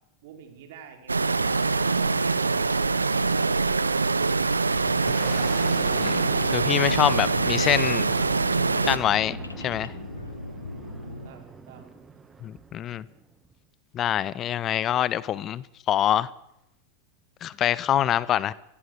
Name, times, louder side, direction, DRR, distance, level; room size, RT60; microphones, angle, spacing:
voice 1, 0.2-5.7 11.1-11.9, right 8 dB, 60° right, 5 dB, 5.5 m, -49 dB
sound 1, 1.1-9.0, right 4 dB, 85° right, 1.1 m, -24 dB
Boom, 4.7-13.6, right 4 dB, 15° right, 2.1 m, -41 dB
sound 2, 5.2-11.3, left 2 dB, 90° left, 1.5 m, -37 dB
voice 2, 6.0-8.1 8.8-9.9 12.4-13.0 13.9-16.3 17.4-18.5, left 11 dB, 35° left, 21 dB, 0.9 m, -25 dB
25.5 x 19.0 x 6.9 m, 0.84 s
figure-of-eight pair, 90°, 0 cm